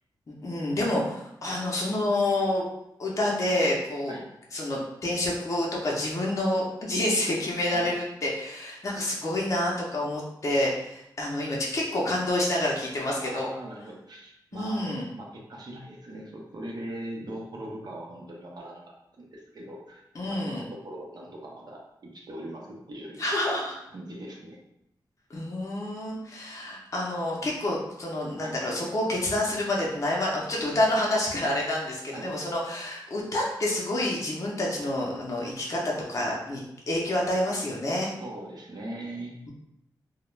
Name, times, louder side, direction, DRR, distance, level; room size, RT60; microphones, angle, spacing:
voice 1, 0.3-2.7 3.0-4.1 4.5-13.5 14.5-15.1 20.2-20.7 23.2-23.8 25.3-38.1, left 1 dB, 40° left, -3 dB, 0.5 m, -28 dB
voice 2, 13.2-14.9 15.2-23.3 23.9-24.6 28.4-28.6 32.1-32.3 38.2-39.3, right 1 dB, 55° right, -1 dB, 0.6 m, -40 dB
2.3 x 2.0 x 3.0 m, 0.80 s
wide cardioid pair, 100°, 8 cm